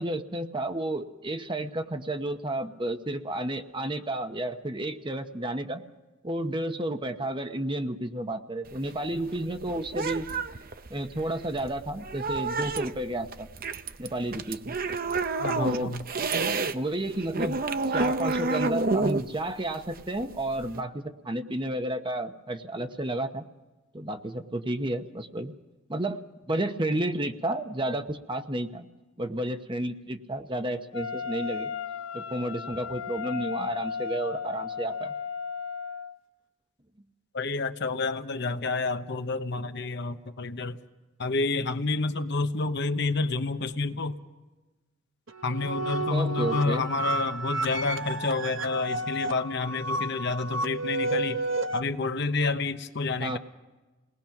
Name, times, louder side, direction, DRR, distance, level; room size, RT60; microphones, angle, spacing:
voice 1, 0.0-5.8 6.2-10.3 10.9-13.5 14.0-14.8 15.6-15.9 16.7-17.6 17.9-23.5 23.9-25.5 25.9-28.9 29.2-31.7 32.1-35.1 46.1-46.9 53.2-53.4, right 1 dB, 25° right, 7 dB, 1.0 m, -31 dB
sound 1, 8.7-16.8 17.1-20.8, right 3 dB, 45° right, 0.8 m, -30 dB
voice 2, 15.4-16.1 37.3-40.8 41.2-44.2 45.4-51.4 51.7-53.4, left 3 dB, 55° left, 8 dB, 1.0 m, -29 dB
Wind instrument woodwind instrument, 30.9-36.2, left 6 dB, 85° left, 0.8 m, -35 dB
sound 2, 45.3-51.8, right 2 dB, 65° right, 1.2 m, -31 dB
28.5 x 19.5 x 5.9 m, 1.2 s
head